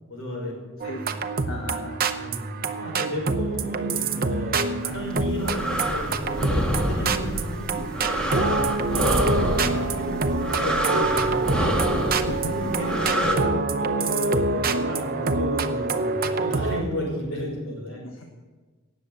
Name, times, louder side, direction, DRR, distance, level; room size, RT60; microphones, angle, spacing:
voice 1, 0.1-0.5 2.1-7.8 8.2-11.7 12.2-18.0, equal, 65° left, -1 dB, 5.5 m, -33 dB
voice 2, 0.8-1.2 1.4-2.0 12.2-12.7 18.0-18.2, left 1 dB, 90° left, 1 dB, 1.3 m, -35 dB
sound 1, 0.8-16.8, right 3 dB, 45° right, 0.8 m, -26 dB
sound 2, 5.0-13.4, equal, 5° left, 1.7 m, -27 dB
18.0 x 7.4 x 6.7 m, 1.3 s
head